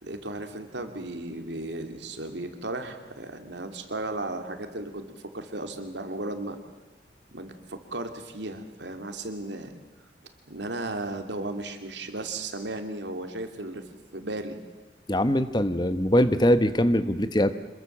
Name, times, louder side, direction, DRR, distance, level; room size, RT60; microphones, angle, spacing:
voice 1, 0.0-5.0 5.3-6.6 7.3-9.7 10.5-13.8 14.1-14.6, right 2 dB, 80° right, 6 dB, 2.7 m, -35 dB
voice 2, 15.1-17.5, equal, 25° left, 11 dB, 1.0 m, -22 dB
26.5 x 22.0 x 7.4 m, 1.2 s
head